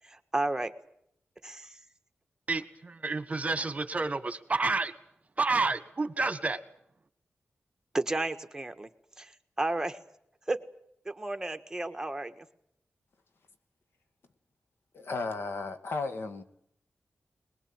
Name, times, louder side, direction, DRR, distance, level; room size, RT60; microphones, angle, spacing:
voice 1, 0.0-0.7 1.4-1.8 7.9-8.9 9.2-10.0 10.5-10.6 11.0-12.5, right 2 dB, 15° right, 8 dB, 1.5 m, -32 dB
voice 2, 2.5-4.9 5.4-6.6, right 3 dB, 35° right, 12 dB, 1.6 m, -29 dB
voice 3, 14.9-16.4, left 3 dB, 75° left, 8 dB, 2.0 m, -34 dB
22.0 x 21.0 x 8.9 m, 0.73 s
wide cardioid pair, 105°, 4 cm